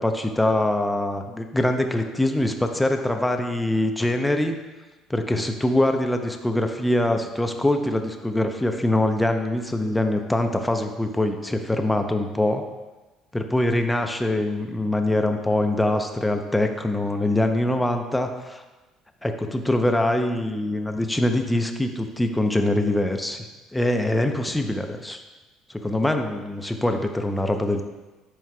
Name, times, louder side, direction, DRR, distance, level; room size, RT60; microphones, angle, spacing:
voice 1, 0.0-4.6 5.1-12.6 13.3-18.6 19.2-23.5 23.7-25.2 25.7-27.8, left 1 dB, 10° left, 5 dB, 0.6 m, -23 dB
10.5 x 4.6 x 2.3 m, 1.2 s
supercardioid pair, 90°, 0 cm